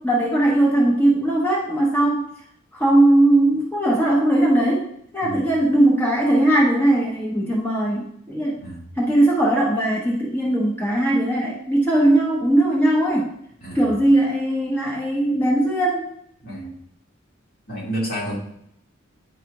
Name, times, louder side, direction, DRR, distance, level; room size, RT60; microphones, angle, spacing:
voice 1, 0.0-2.3 2.7-4.9 5.1-8.6 9.0-13.3 13.7-16.1, right 1 dB, 10° left, -4 dB, 0.9 m, -19 dB
voice 2, 8.6-8.9 13.6-13.9 16.4-16.7 17.7-18.4, right 1 dB, 45° left, -4 dB, 2.0 m, -30 dB
9.3 x 4.9 x 2.9 m, 0.72 s
head